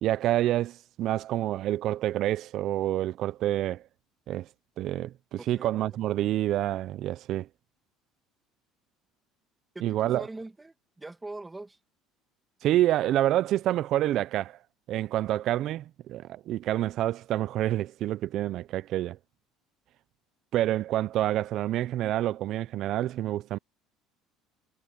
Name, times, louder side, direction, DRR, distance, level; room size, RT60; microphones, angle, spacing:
voice 1, 0.0-3.8 4.3-4.5 4.8-7.5 9.8-10.2 12.6-14.6 14.9-19.2 20.5-23.6, right 13 dB, 50° right, 0.4 m, -28 dB
voice 2, 5.4-6.0 9.7-11.8, right 2 dB, 10° right, 2.2 m, -42 dB
cardioid pair, 150°, 0 cm